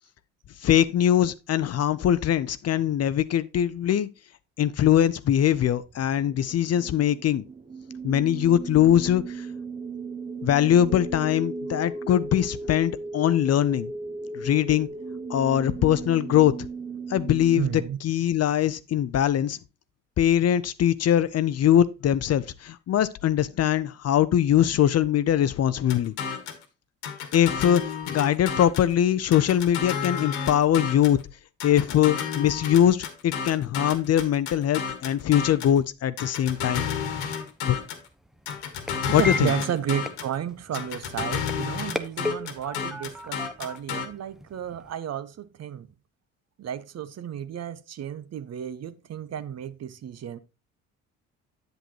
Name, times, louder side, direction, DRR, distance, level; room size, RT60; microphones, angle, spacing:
voice 1, 0.6-4.1 4.6-7.4 8.0-9.5 10.4-13.9 14.3-14.9 15.3-16.5 17.1-17.7 18.0-19.6 20.2-26.1 27.3-27.8 28.1-31.2 31.6-36.9 37.6-37.8 39.1-39.5, left 10 dB, 40° left, 0.6 m, -22 dB
sound 1, 5.9-17.6, right 3 dB, 20° right, 1.0 m, -36 dB
voice 2, 17.6-18.0 39.2-45.9 46.6-50.4, right 9 dB, 40° right, 0.7 m, -32 dB
sound 2, 25.9-26.6 27.0-28.9 29.3-31.2 31.6-35.8 36.2-38.1 38.5-40.3 40.7-44.1, left 7 dB, 75° left, 1.4 m, -31 dB
sound 3, 37.4-44.9, left 1 dB, ahead, 0.7 m, -37 dB
8.0 x 7.8 x 2.9 m
hypercardioid pair, 55°, 38 cm